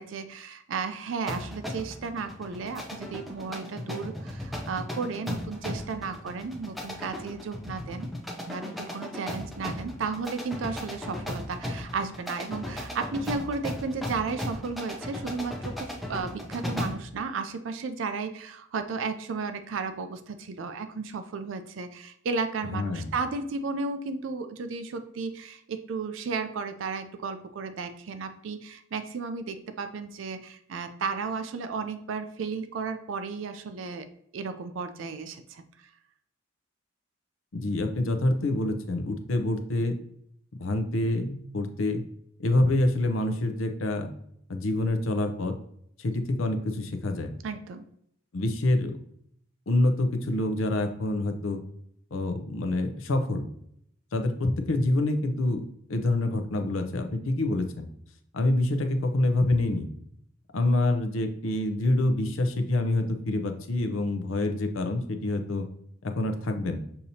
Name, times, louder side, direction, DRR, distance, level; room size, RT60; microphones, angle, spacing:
voice 1, 0.0-8.1 8.5-34.1 34.3-35.6 47.4-47.9, right 4 dB, 70° right, 9 dB, 0.4 m, -34 dB
sound 1, 1.3-17.1, left 1 dB, ahead, 0.5 m, -36 dB
voice 2, 22.7-23.1 37.5-39.9 40.6-42.0 42.4-44.1 44.5-45.5 46.0-47.3 48.3-48.9 49.7-51.6 52.1-53.5 54.1-55.6 55.9-57.9 58.3-59.9 60.5-65.7 66.0-66.8, left 2 dB, 80° left, 6 dB, 0.6 m, -26 dB
6.5 x 2.8 x 2.7 m, 0.71 s
head